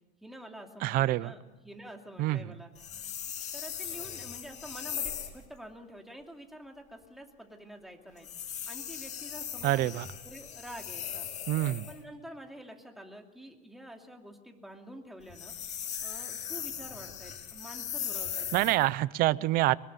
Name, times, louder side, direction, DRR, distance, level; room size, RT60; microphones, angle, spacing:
voice 1, 0.2-2.7 3.5-8.3 8.7-11.3 11.9-15.5 16.0-18.8 19.3-19.5, equal, ahead, 2 dB, 2.7 m, -48 dB
voice 2, 0.8-1.3 2.2-2.4 9.6-10.1 11.5-11.9 18.5-19.8, right 16 dB, 50° right, 19 dB, 0.7 m, -26 dB
sound 1, 2.8-5.4 8.2-12.0 15.2-18.9, left 9 dB, 40° left, 2.5 m, -39 dB
22.5 x 20.5 x 6.9 m, 1.1 s
cardioid pair, 140°, 19 cm